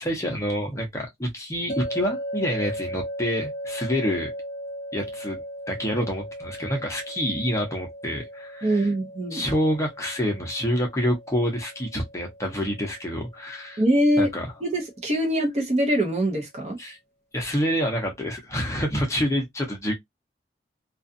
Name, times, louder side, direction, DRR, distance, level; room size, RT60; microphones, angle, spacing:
voice 1, 0.0-4.3 4.9-5.4 5.7-8.9 9.3-13.8 14.2-14.5 16.8-17.0 17.3-19.9, equal, 15° left, 0.7 m, -27 dB
sound 1, 1.7-14.8, equal, 40° left, 1.0 m, -37 dB
voice 2, 8.6-9.4 13.8-14.3 14.6-16.8, equal, 40° right, 0.8 m, -23 dB
2.4 x 2.3 x 2.5 m
head